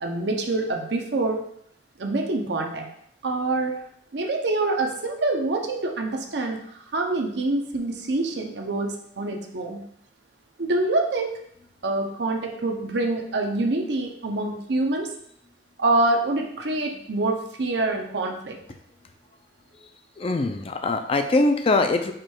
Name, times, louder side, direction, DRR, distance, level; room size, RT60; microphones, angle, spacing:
voice 1, 0.0-1.4 2.0-2.9 3.2-3.7 4.1-6.6 6.9-9.8 10.6-11.4 11.8-15.1 15.8-18.6, right 2 dB, 70° right, 3 dB, 0.7 m, -25 dB
voice 2, 20.2-22.1, left 2 dB, 30° left, 6 dB, 0.4 m, -22 dB
5.0 x 2.3 x 4.4 m, 0.70 s
head